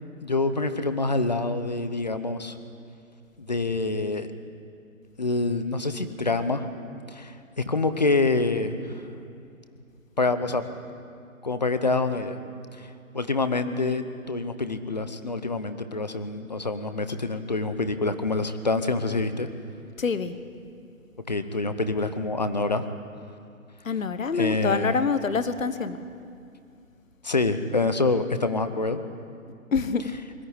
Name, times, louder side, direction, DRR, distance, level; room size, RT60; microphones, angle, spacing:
voice 1, 0.2-2.6 3.5-4.3 5.2-6.7 7.1-9.0 10.2-10.6 11.4-12.4 12.7-19.5 21.3-22.8 24.3-25.0 27.2-29.0, left 3 dB, 30° left, 10 dB, 0.8 m, -26 dB
voice 2, 20.0-20.3 23.8-26.0 29.7-30.0, left 5 dB, 65° left, 12 dB, 1.3 m, -26 dB
21.5 x 13.5 x 9.7 m, 2.4 s
figure-of-eight pair, 165°, 42 cm